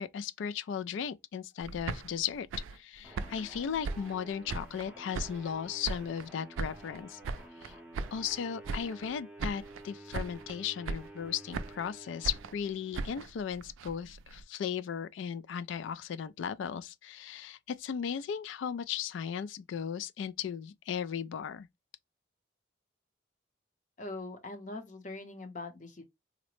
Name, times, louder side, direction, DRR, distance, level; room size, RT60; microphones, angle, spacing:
voice 1, 0.0-2.5 2.7-7.2 7.6-7.7 8.1-21.7, left 8 dB, 75° left, 0.3 m, -36 dB
sound 1, 1.6-4.9 5.1-6.3 6.6-8.4 8.6-9.1 9.4-9.9 10.1-10.6 10.8-11.9 12.2-14.4, right 4 dB, 85° right, 0.3 m, -39 dB
sound 2, 3.0-13.3, right 1 dB, 5° right, 0.6 m, -51 dB
voice 2, 24.0-26.0, left 2 dB, 40° left, 0.7 m, -42 dB
3.8 x 2.1 x 3.0 m
head